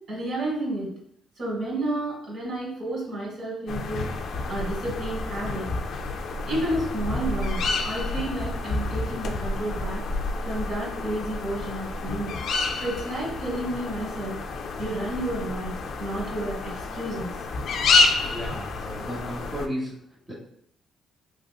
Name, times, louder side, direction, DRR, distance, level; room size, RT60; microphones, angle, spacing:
voice 1, 0.1-0.9 1.4-4.1 4.5-5.7 6.5-10.0 10.4-12.3 12.8-14.4 14.8-17.3, right 1 dB, 60° right, -3 dB, 1.5 m, -31 dB
sound 1, 3.7-19.7, left 3 dB, 65° left, 0.3 m, -29 dB
voice 2, 18.2-19.9 20.3-20.4, equal, 20° right, -5 dB, 0.7 m, -33 dB
2.9 x 2.9 x 2.2 m, 0.70 s
cardioid pair, 90°, 0 cm